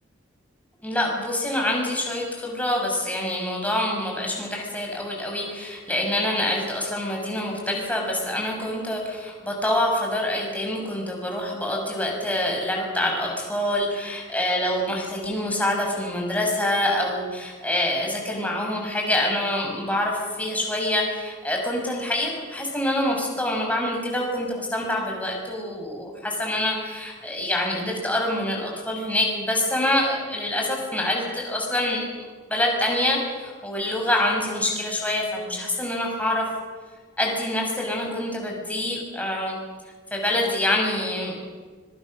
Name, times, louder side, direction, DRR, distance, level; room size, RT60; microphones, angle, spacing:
voice 1, 0.8-32.0 32.5-36.5 37.2-39.6 40.1-41.5, left 1 dB, 10° left, 0 dB, 6.1 m, -26 dB
25.0 x 23.0 x 6.5 m, 1.5 s
head